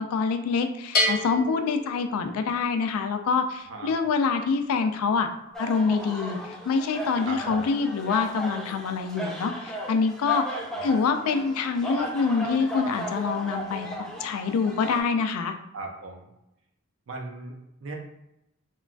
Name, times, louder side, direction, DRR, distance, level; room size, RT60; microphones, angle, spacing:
voice 1, 0.0-5.3 5.6-10.4 10.8-15.5, left 5 dB, 85° left, 7 dB, 0.3 m, -26 dB
Bell, 0.9-2.7, left 1 dB, 45° left, 0.7 m, -28 dB
sound 1, 5.5-15.0, right 1 dB, 5° left, 0.3 m, -36 dB
voice 2, 7.2-7.7 10.5-10.9 15.7-16.3 17.1-17.9, right 2 dB, 60° right, 1 dB, 0.5 m, -38 dB
3.0 x 2.2 x 2.4 m, 0.87 s
head